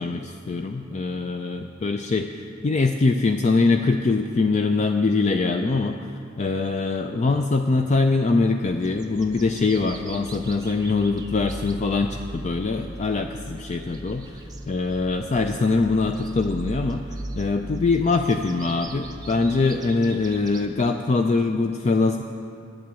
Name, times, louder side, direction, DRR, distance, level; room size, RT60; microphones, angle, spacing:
voice 1, 0.0-6.0 6.4-17.0 17.4-22.2, left 3 dB, 35° left, 5 dB, 0.4 m, -23 dB
sound 1, 8.6-20.7, right 1 dB, 20° right, 0.7 m, -39 dB
10.5 x 7.6 x 8.3 m, 2.5 s
head